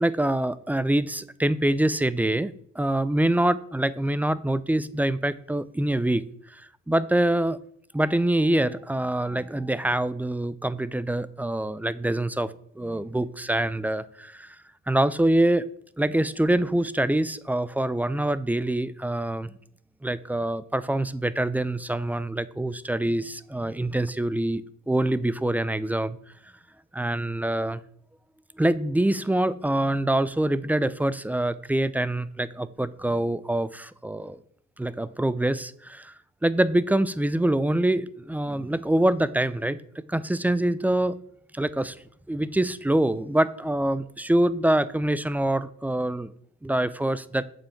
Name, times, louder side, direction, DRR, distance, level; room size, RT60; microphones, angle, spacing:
voice 1, 0.0-6.3 6.5-6.6 6.9-7.6 7.9-14.6 14.9-15.7 16.0-19.5 20.0-26.2 26.9-27.8 28.6-34.4 34.8-36.1 36.4-39.8 40.1-41.2 41.5-42.0 42.3-46.3 46.6-47.4, right 1 dB, 5° right, 17 dB, 0.3 m, -25 dB
7.1 x 5.4 x 5.7 m, 0.65 s
cardioid pair, 90°, 30 cm